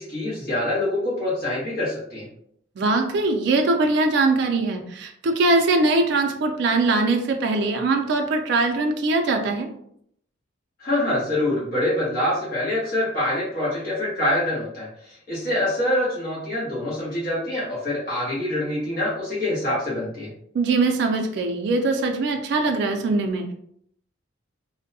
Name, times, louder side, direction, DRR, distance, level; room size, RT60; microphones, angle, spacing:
voice 1, 0.0-2.3 10.8-20.3, left 1 dB, 50° left, -7 dB, 1.1 m, -25 dB
voice 2, 2.8-9.7 20.5-23.5, right 3 dB, 60° right, 4 dB, 0.3 m, -22 dB
2.6 x 2.1 x 2.6 m, 0.69 s
head